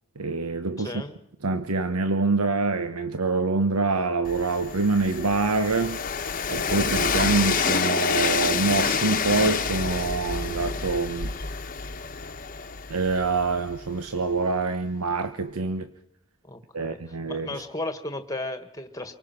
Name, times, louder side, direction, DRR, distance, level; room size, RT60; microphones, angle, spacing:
voice 1, 0.2-1.0 1.4-6.0 6.5-11.3 12.9-15.9 16.7-17.6, right 3 dB, 90° right, 9 dB, 1.1 m, -25 dB
voice 2, 0.8-1.2 16.4-19.1, left 2 dB, 15° left, 8 dB, 1.6 m, -35 dB
Train, 4.2-14.1, left 5 dB, 40° left, 1.1 m, -28 dB
28.0 x 24.0 x 5.9 m, 0.78 s
head